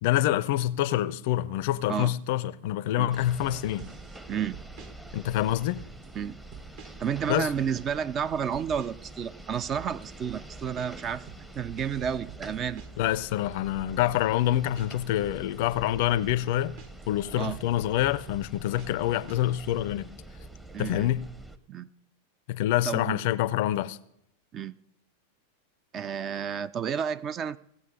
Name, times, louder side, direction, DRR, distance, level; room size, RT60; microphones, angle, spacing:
voice 1, 0.0-3.9 5.1-5.8 7.3-7.5 13.0-16.8 17.1-20.1 20.8-21.3 22.5-24.0, left 13 dB, 50° left, 0.4 m, -26 dB
sound 1, 3.1-21.6, right 2 dB, 10° right, 0.8 m, -46 dB
sound 2, 3.8-4.2 4.5-4.9 5.5-6.1 6.5-7.1 7.4-7.9 8.5-9.1 9.4-13.1 13.5-13.9 14.5-17.1 17.5-19.7, right 8 dB, 50° right, 1.3 m, -48 dB
voice 2, 4.3-4.6 6.1-6.4 7.0-11.2 11.5-12.8 17.4-17.6 20.7-21.1 21.7-21.9 22.8-23.2 24.5-24.7 25.9-27.6, right 8 dB, 30° right, 0.4 m, -31 dB
17.0 x 7.7 x 5.3 m
figure-of-eight pair, 90°, 0 cm